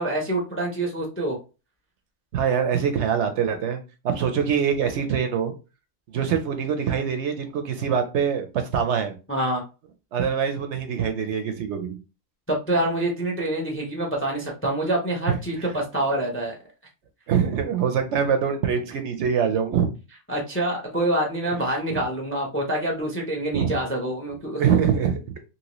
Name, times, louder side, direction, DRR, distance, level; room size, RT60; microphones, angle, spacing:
voice 1, 0.0-1.4 9.3-9.6 12.5-16.5 20.3-24.6, right 1 dB, 15° left, 0.4 m, -26 dB
voice 2, 2.3-5.5 6.1-9.1 10.1-12.0 15.3-15.7 17.3-19.9 21.5-21.6 21.9-22.0 23.5-23.8 24.6-25.2, right 7 dB, 65° right, 0.8 m, -24 dB
2.9 x 2.8 x 2.9 m
omnidirectional pair, 1.4 m